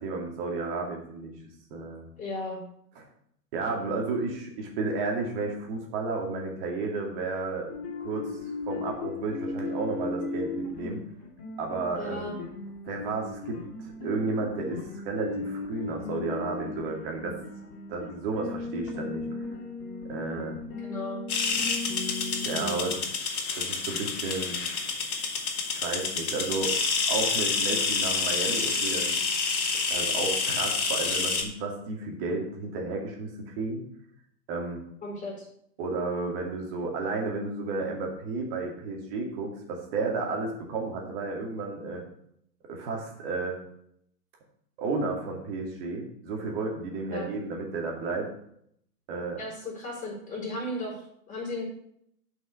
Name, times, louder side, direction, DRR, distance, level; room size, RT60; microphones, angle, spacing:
voice 1, 0.0-1.3 1.7-2.0 2.9-3.0 3.5-7.7 8.0-8.4 8.7-11.0 11.6-12.3 12.9-17.4 17.9-19.5 20.1-20.6 22.4-23.1 23.5-24.6 25.7-26.7 27.1-29.2 29.9-33.8 34.5-34.8 35.8-42.0 42.7-43.6 44.8-48.3 49.1-49.4, right 3 dB, 35° right, 1 dB, 2.3 m, -32 dB
voice 2, 2.2-2.6 12.0-12.4 20.8-21.2 35.0-35.5 47.1-47.3 49.4-51.0 51.3-51.6, left 2 dB, 15° left, -4 dB, 4.4 m, -35 dB
sound 1, 7.7-22.8, left 3 dB, 35° left, 2.4 m, -37 dB
sound 2, 21.3-31.4, left 4 dB, 60° left, 1.8 m, -28 dB
8.0 x 5.7 x 6.8 m, 0.70 s
figure-of-eight pair, 120°, 49 cm